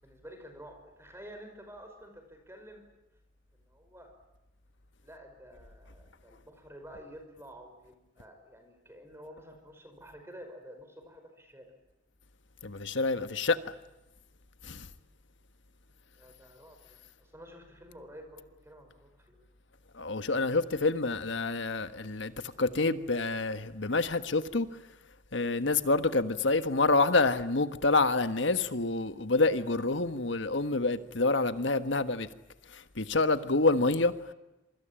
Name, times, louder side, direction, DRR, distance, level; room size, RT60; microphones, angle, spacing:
voice 1, 0.0-2.9 3.5-4.1 5.0-11.7 16.2-19.5, equal, 15° right, 5.3 m, -50 dB
voice 2, 12.6-13.6 14.6-14.9 19.9-22.3 22.6-24.7 25.3-32.3 32.7-34.3, left 3 dB, 70° left, 1.5 m, -27 dB
27.0 x 24.5 x 8.9 m
head